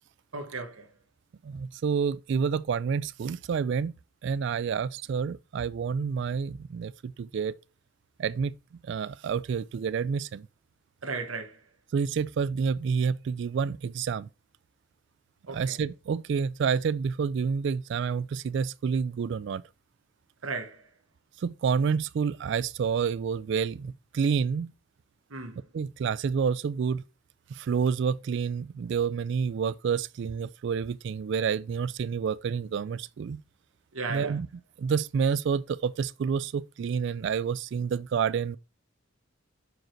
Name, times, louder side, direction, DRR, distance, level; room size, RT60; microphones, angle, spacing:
voice 1, 0.3-0.9 11.0-11.6 15.5-15.8 20.4-20.8 25.3-25.6 33.9-34.4, right 4 dB, 85° right, 1.1 m, -35 dB
voice 2, 1.4-3.9 4.2-7.5 8.2-8.5 8.8-10.5 11.9-14.3 15.5-19.6 21.4-24.7 25.7-27.0 27.5-33.4 34.1-34.5 34.8-38.6, right 6 dB, 60° right, 0.3 m, -29 dB
6.3 x 4.9 x 4.4 m
head